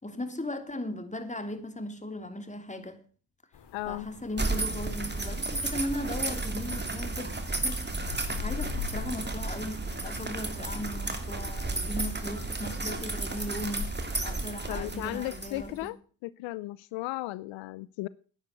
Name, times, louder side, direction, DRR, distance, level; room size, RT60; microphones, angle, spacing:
voice 1, 0.0-3.0 3.9-7.3 7.6-7.9 8.4-14.0 14.2-15.9, left 1 dB, 15° left, 3.1 m, -37 dB
sound 1, 3.5-13.9, left 7 dB, 60° left, 2.8 m, -43 dB
voice 2, 3.7-4.1 14.7-16.0 16.2-18.1, left 19 dB, 80° left, 0.7 m, -35 dB
sound 2, 4.4-15.9, right 2 dB, 20° right, 3.1 m, -33 dB
10.0 x 9.5 x 8.3 m
hypercardioid pair, 55°, 46 cm